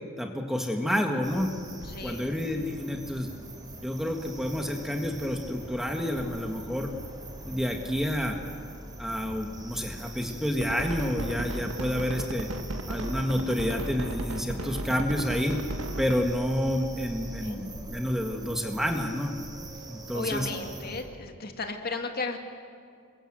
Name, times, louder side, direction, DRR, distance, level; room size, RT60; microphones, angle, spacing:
voice 1, 0.2-1.5 2.0-3.3 3.8-6.9 7.4-8.4 9.0-12.5 12.9-15.6 16.0-19.3 19.9-20.5, equal, ahead, 2 dB, 1.8 m, -29 dB
sound 1, 1.2-21.0, right 1 dB, 20° right, 3.9 m, -43 dB
voice 2, 1.7-2.5 17.4-17.7 20.1-22.4, left 3 dB, 50° left, 4 dB, 2.2 m, -35 dB
sound 2, 10.6-16.2, right 1 dB, 85° right, 1.7 m, -34 dB
27.5 x 23.0 x 7.7 m, 2.3 s
head